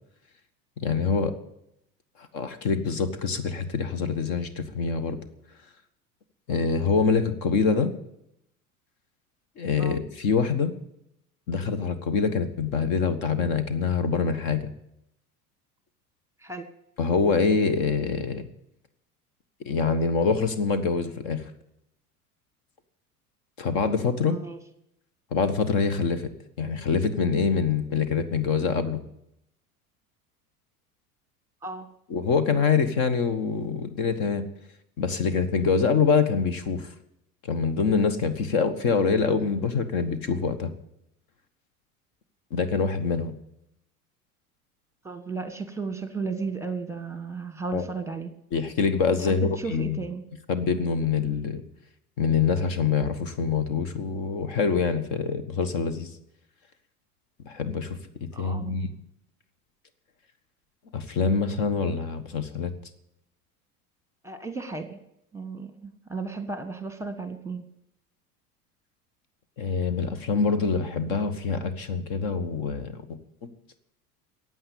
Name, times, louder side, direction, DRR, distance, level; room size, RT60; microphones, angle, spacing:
voice 1, 0.8-1.3 2.2-5.2 6.5-7.9 9.6-10.7 11.5-14.7 17.0-18.4 19.6-21.4 23.6-24.4 25.3-26.3 26.6-29.0 32.1-34.5 35.0-36.9 37.4-40.7 42.5-43.3 47.7-47.8 48.5-50.0 50.5-51.6 52.2-56.1 57.4-58.9 60.9-62.7 69.6-73.2, left 5 dB, 50° left, 12 dB, 1.5 m, -25 dB
voice 2, 24.3-24.6 31.6-31.9 45.0-48.3 49.2-50.2 58.3-58.7 64.2-65.0 65.3-67.6, right 4 dB, 5° right, 9 dB, 1.4 m, -34 dB
15.0 x 9.0 x 8.5 m, 0.80 s
figure-of-eight pair, 75°, 45 cm